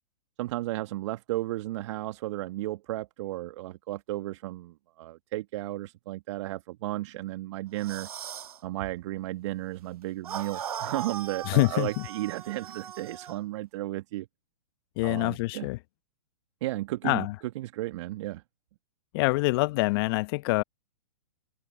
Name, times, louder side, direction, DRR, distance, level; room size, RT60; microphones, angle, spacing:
voice 1, 0.4-8.1 8.6-14.3 15.0-15.7 16.6-17.3 17.6-18.4, right 16 dB, 50° right, 1.8 m, -34 dB
sound 1, 7.8-8.6 10.2-13.4, right 9 dB, 70° right, 2.1 m, -39 dB
voice 2, 11.4-12.1 15.0-15.8 17.0-17.3 19.1-20.6, left 23 dB, 40° left, 1.0 m, -25 dB
open air
hypercardioid pair, 120°, 20 cm